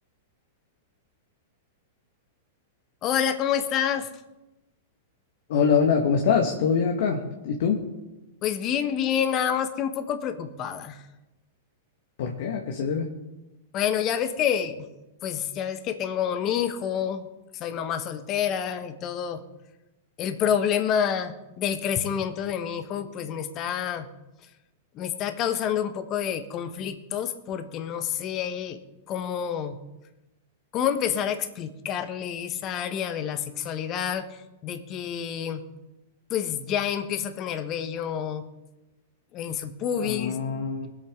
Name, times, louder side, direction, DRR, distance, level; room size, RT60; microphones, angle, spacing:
voice 1, 3.0-4.1 8.4-11.0 13.7-14.9 15.2-17.3 17.5-19.4 20.2-24.1 24.9-28.8 29.1-29.7 30.7-35.6 36.3-38.4 39.3-40.4, left 9 dB, 40° left, 9 dB, 1.3 m, -28 dB
voice 2, 5.5-7.8 12.2-13.1 40.0-40.9, left 6 dB, 65° left, 2 dB, 1.7 m, -24 dB
22.5 x 8.3 x 3.8 m, 1.0 s
hypercardioid pair, 110°, 0 cm